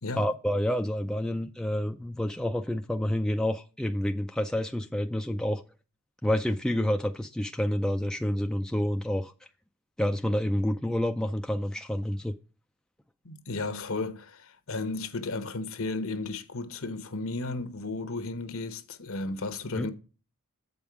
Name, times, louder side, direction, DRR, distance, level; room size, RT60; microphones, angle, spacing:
voice 1, 0.2-5.6 6.2-9.3 10.0-12.3 19.7-19.9, left 1 dB, 5° left, 0.4 m, -28 dB
voice 2, 13.2-19.9, left 3 dB, 65° left, 1.0 m, -34 dB
8.0 x 5.4 x 4.7 m
head